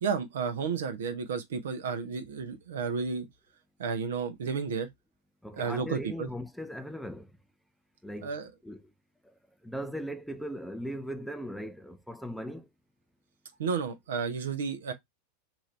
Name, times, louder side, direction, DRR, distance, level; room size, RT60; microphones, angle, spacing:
voice 1, 0.0-3.3 3.8-4.9 5.5-6.3 8.2-8.5 13.6-14.9, right 5 dB, 75° right, 0.8 m, -32 dB
voice 2, 5.4-7.3 8.0-8.8 9.6-12.7, equal, ahead, 0.4 m, -38 dB
3.0 x 2.6 x 4.1 m
hypercardioid pair, 100°, 0 cm